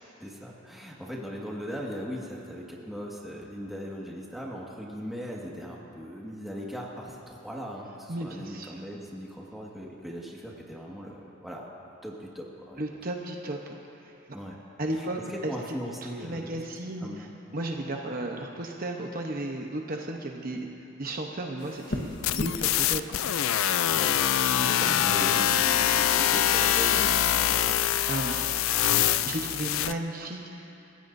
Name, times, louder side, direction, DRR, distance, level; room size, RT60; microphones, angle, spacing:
voice 1, 0.2-11.7 12.0-12.8 14.3-14.6 14.9-16.6 17.0-17.3 23.9-27.8 28.9-29.1, equal, ahead, -4 dB, 1.8 m, -39 dB
voice 2, 8.1-8.7 12.8-13.6 14.8-15.2 15.4-15.5 16.2-17.3 17.5-20.7 21.0-23.2 28.1-28.4 29.2-30.8, right 1 dB, 45° right, 1 dB, 0.9 m, -34 dB
sound 1, 21.6-27.4, left 1 dB, 55° left, 1.3 m, -40 dB
sound 2, 22.2-29.9, left 11 dB, 80° left, 0.4 m, -24 dB
28.5 x 15.5 x 2.7 m, 2.9 s
head